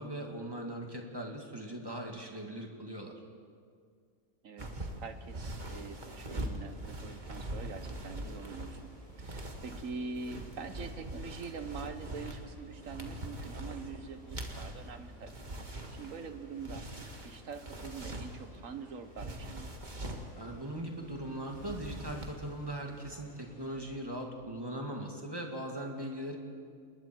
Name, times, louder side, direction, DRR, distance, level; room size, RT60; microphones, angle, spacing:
voice 1, 0.0-3.1 20.4-26.4, right 1 dB, 15° right, 1 dB, 2.2 m, -40 dB
voice 2, 4.4-8.9 9.2-15.4 15.9-16.9 17.2-19.7, right 5 dB, 70° right, 9 dB, 1.5 m, -44 dB
sound 1, 4.6-18.6 19.1-20.3 21.4-22.6 22.8-23.1, right 1 dB, 35° right, 1.7 m, -42 dB
sound 2, 5.1-24.0, right 1 dB, 5° left, 6.1 m, -56 dB
27.5 x 21.0 x 4.6 m, 2.2 s
omnidirectional pair, 1.5 m